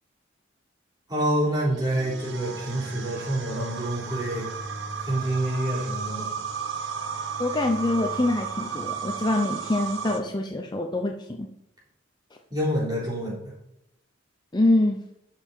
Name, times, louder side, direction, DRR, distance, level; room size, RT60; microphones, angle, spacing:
voice 1, 1.1-4.5 5.0-6.3 12.5-13.5, right 1 dB, 20° right, -5 dB, 4.0 m, -27 dB
sound 1, 1.8-10.2, right 6 dB, 65° right, 1.1 m, -34 dB
voice 2, 7.4-11.5 14.5-15.0, left 2 dB, 20° left, 2 dB, 0.7 m, -25 dB
12.0 x 5.8 x 4.5 m, 0.80 s
head